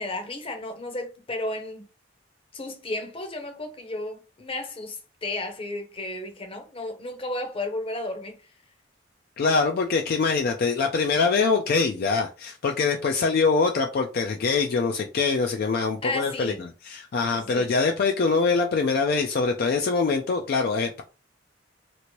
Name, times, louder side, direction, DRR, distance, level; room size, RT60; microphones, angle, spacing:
voice 1, 0.0-1.8 2.5-8.4 16.0-16.6 17.3-17.7, left 2 dB, 30° left, 0.7 m, -33 dB
voice 2, 9.4-21.0, left 4 dB, 55° left, 0.4 m, -24 dB
3.0 x 2.5 x 2.9 m
head